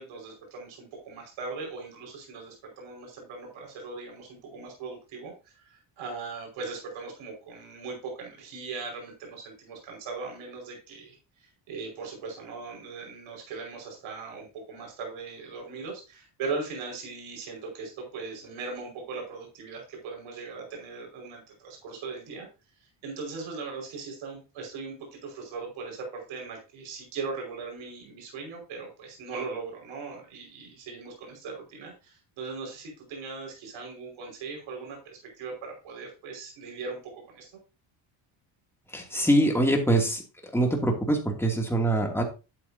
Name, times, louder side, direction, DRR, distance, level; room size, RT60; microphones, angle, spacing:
voice 1, 0.0-22.5 23.0-37.5, right 4 dB, 75° right, 0 dB, 5.4 m, -39 dB
voice 2, 38.9-40.2 40.5-42.2, right 1 dB, 5° left, 1 dB, 2.6 m, -24 dB
11.5 x 8.0 x 2.8 m, 0.30 s
cardioid pair, 110°, 47 cm